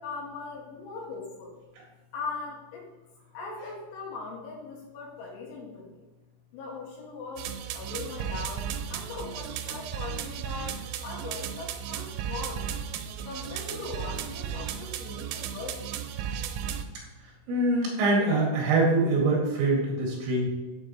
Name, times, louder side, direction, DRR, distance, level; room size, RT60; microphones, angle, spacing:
voice 1, 0.0-1.6 2.1-2.8 3.3-6.0 6.5-12.7 13.3-15.8, left 4 dB, 70° left, -2 dB, 3.7 m, -40 dB
sound 1, 7.4-16.8, right 8 dB, 85° right, 3.5 m, -35 dB
voice 2, 17.5-20.5, right 2 dB, 65° right, -3 dB, 4.3 m, -24 dB
12.5 x 7.3 x 3.1 m, 1.2 s
omnidirectional pair, 6.0 m